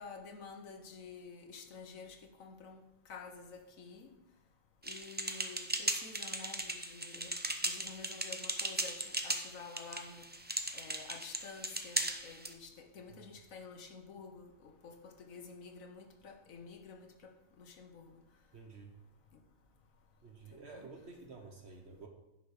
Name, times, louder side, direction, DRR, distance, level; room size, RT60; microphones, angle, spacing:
voice 1, 0.0-2.8 3.1-4.1 4.8-7.3 7.6-10.2 10.7-17.3 17.6-18.1 20.5-20.9, left 5 dB, 75° left, 4 dB, 1.5 m, -50 dB
sound 1, 4.8-12.5, right 1 dB, 15° right, 0.3 m, -37 dB
voice 2, 18.5-19.0 20.2-22.1, right 4 dB, 55° right, 3 dB, 1.2 m, -51 dB
10.5 x 6.0 x 4.9 m, 0.92 s
omnidirectional pair, 1.4 m